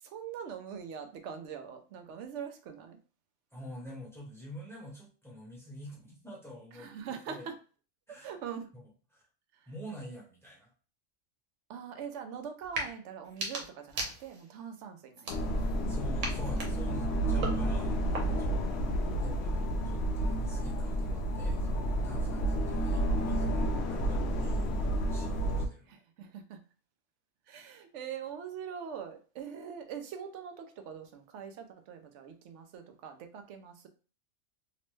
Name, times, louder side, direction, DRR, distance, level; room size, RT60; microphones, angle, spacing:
voice 1, 0.0-3.0 6.7-7.5 8.1-8.7 9.5-9.7 11.7-15.3 18.3-18.8 22.1-22.4 24.4-24.6 25.9-26.6 27.5-33.9, right 7 dB, 65° right, 6 dB, 0.8 m, -43 dB
voice 2, 3.5-6.9 7.3-7.5 8.1-8.3 8.7-8.8 9.1-9.2 9.7-10.7 15.9-19.5 19.8-25.9, equal, ahead, -4 dB, 0.9 m, -47 dB
sound 1, 12.6-12.9 13.2-14.6 15.1-15.8 16.2-18.6, right 2 dB, 90° right, 1.3 m, -39 dB
sound 2, 15.3-25.7, right 1 dB, 65° left, 0.7 m, -30 dB
2.9 x 2.1 x 3.1 m, 0.37 s
omnidirectional pair, 1.4 m